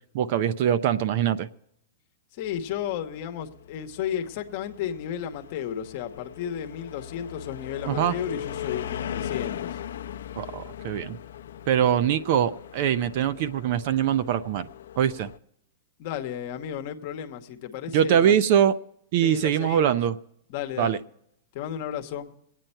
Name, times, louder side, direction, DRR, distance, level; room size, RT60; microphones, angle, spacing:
voice 1, 0.1-1.5 7.9-8.1 10.4-11.2 11.7-14.7 15.0-15.3 17.9-18.7 19.1-20.2 20.8-21.0, right 9 dB, 40° right, 0.4 m, -23 dB
voice 2, 2.3-9.8 16.0-18.4 19.2-20.0 20.5-21.0 21.5-22.3, left 9 dB, 35° left, 1.1 m, -33 dB
sound 1, 2.4-15.4, left 10 dB, 90° left, 0.5 m, -39 dB
22.0 x 9.1 x 4.4 m
supercardioid pair, 175°, 0 cm